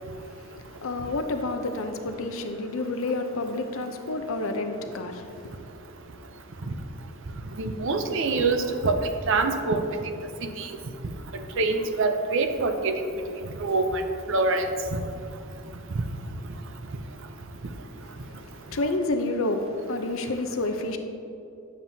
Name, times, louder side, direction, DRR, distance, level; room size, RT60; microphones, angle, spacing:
voice 1, 0.0-5.6 18.0-21.0, left 2 dB, 65° left, 6 dB, 0.6 m, -30 dB
voice 2, 7.6-9.0 9.3-9.8 10.4-10.7 11.6-12.9 13.6-14.0 14.3-14.7 14.9-15.0, right 3 dB, 60° right, 7 dB, 0.6 m, -24 dB
9.0 x 7.2 x 2.7 m, 2.7 s
head